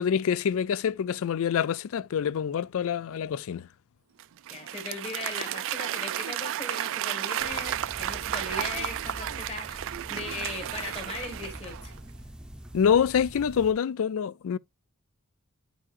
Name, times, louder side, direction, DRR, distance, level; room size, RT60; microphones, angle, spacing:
voice 1, 0.0-3.7 12.7-14.6, left 7 dB, 65° left, 0.4 m, -26 dB
Applause / Crowd, 4.2-12.0, right 12 dB, 60° right, 0.4 m, -33 dB
voice 2, 4.5-11.9, left 3 dB, 30° left, 1.7 m, -38 dB
sound 1, 7.4-13.7, equal, 5° right, 0.7 m, -44 dB
9.7 x 5.0 x 2.5 m
head